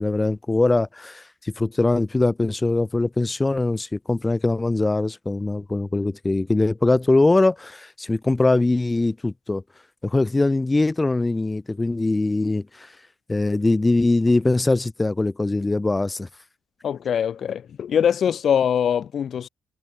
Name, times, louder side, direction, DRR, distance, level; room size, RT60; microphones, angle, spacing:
voice 1, 0.0-9.6 10.0-12.9 13.3-16.3, left 2 dB, 20° left, 0.7 m, -22 dB
voice 2, 16.8-19.5, left 8 dB, 65° left, 0.5 m, -22 dB
supercardioid pair, 65°, 0 cm